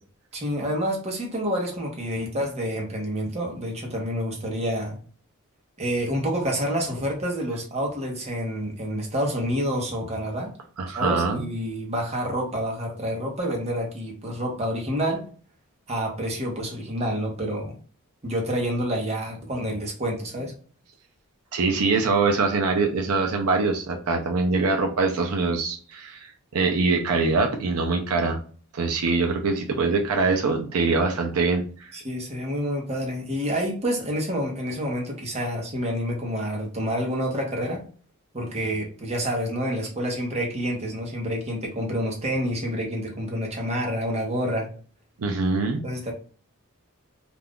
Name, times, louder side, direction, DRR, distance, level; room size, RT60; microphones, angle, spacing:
voice 1, 0.3-5.0 5.8-10.5 11.0-15.2 15.9-17.8 18.2-20.5 31.9-37.8 38.3-44.7 45.8-46.1, equal, 30° right, 0 dB, 0.8 m, -28 dB
voice 2, 10.8-11.5 21.5-26.3 26.5-28.4 28.7-31.9 45.2-45.8, right 3 dB, 75° right, 3 dB, 0.5 m, -23 dB
2.4 x 2.3 x 3.5 m, 0.41 s
head